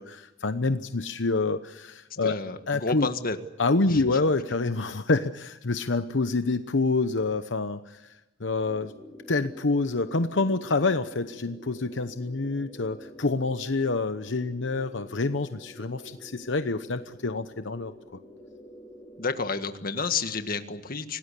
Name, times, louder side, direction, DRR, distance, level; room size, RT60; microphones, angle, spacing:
voice 1, 0.0-2.4 2.7-3.1 3.6-8.0 8.4-8.9 9.3-17.9, left 3 dB, 80° left, 10 dB, 1.0 m, -27 dB
voice 2, 2.2-3.4 3.9-4.0 19.2-21.2, left 4 dB, 50° left, 8 dB, 1.8 m, -30 dB
sound 1, 8.7-19.5, equal, 20° left, 5.0 m, -48 dB
26.0 x 18.5 x 8.4 m, 1.0 s
head